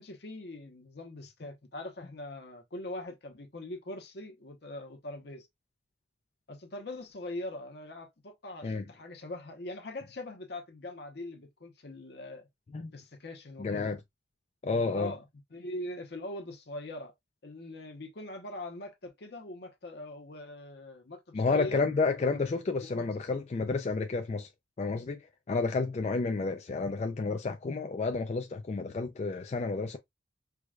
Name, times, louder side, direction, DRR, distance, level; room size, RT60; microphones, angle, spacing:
voice 1, 0.0-5.5 6.5-12.5 12.9-13.9 14.7-15.2 15.5-17.1 17.4-21.8 22.8-23.1, left 1 dB, 55° left, 0.8 m, -42 dB
voice 2, 13.6-14.0 14.6-15.1 21.3-24.5 24.8-30.0, left 4 dB, 35° left, 0.3 m, -30 dB
4.6 x 2.2 x 2.3 m
head